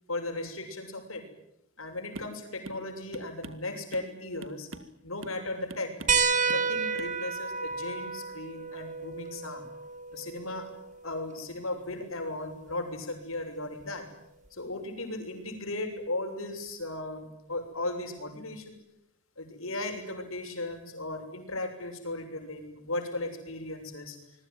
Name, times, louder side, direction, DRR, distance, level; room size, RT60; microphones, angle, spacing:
voice 1, 0.1-1.3 1.8-4.7 5.0-6.0 6.3-9.6 10.1-10.7 11.0-14.1 14.5-18.8 19.4-24.2, left 2 dB, 75° left, 5 dB, 6.8 m, -36 dB
Jungle drum simple, 2.2-2.4 2.7-2.9 3.1-4.1 4.4-5.0 5.2-5.4 5.7-6.2 6.5-6.7 7.0-7.2, right 1 dB, 65° right, 2.0 m, -44 dB
sound 1, 6.1-11.2 12.7-12.8 14.5-14.6, right 5 dB, 35° right, 2.1 m, -31 dB
27.0 x 22.0 x 9.3 m, 0.80 s
head